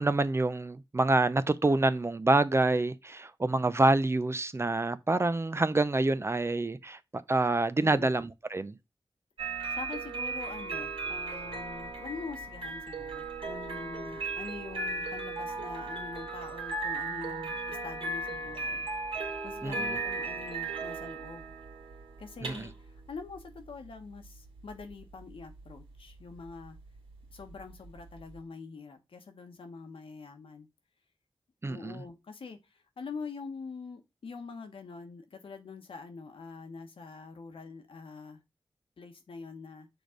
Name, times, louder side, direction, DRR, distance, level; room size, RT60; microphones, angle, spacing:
voice 1, 0.0-8.7 19.6-20.0 22.4-22.7 31.6-32.0, right 2 dB, 30° right, 0.5 m, -27 dB
voice 2, 7.8-8.1 9.7-18.9 19.4-21.4 22.2-22.7 23.1-26.8 27.3-30.7 31.7-32.6 33.0-38.4 39.0-39.9, left 4 dB, 80° left, 1.3 m, -44 dB
sound 1, 9.4-28.4, right 3 dB, 85° right, 2.2 m, -37 dB
6.2 x 3.4 x 5.0 m
wide cardioid pair, 65°, 9 cm